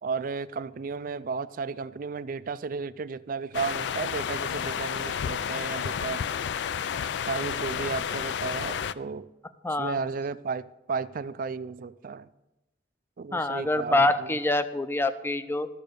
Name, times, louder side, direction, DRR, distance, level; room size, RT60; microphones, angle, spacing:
voice 1, 0.0-6.2 7.2-9.3 9.8-12.3 13.2-14.3, right 5 dB, 50° right, 0.4 m, -33 dB
sound 1, 3.5-8.9, left 8 dB, 70° left, 0.3 m, -31 dB
voice 2, 9.6-10.0 13.3-15.7, left 2 dB, 15° left, 0.5 m, -25 dB
12.5 x 6.4 x 6.7 m
head